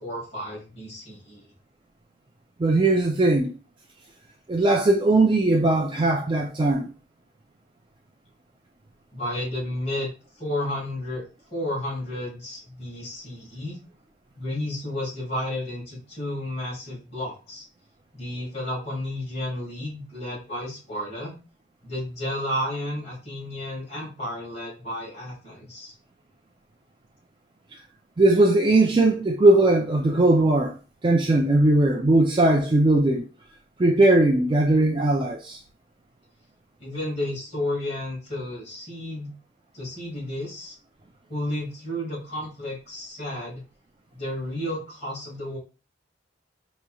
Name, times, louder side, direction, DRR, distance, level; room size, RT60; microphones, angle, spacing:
voice 1, 0.0-1.5 9.1-10.1 10.4-11.2 11.5-13.8 14.4-17.6 18.1-21.3 21.8-25.9 36.8-39.3 39.7-40.7 41.3-43.6 44.2-45.6, left 1 dB, 35° left, 2.1 m, -32 dB
voice 2, 2.6-3.5 4.5-6.9 28.2-30.7 31.0-33.3 33.8-35.6, right 2 dB, 25° right, 0.4 m, -19 dB
5.2 x 3.0 x 2.3 m
head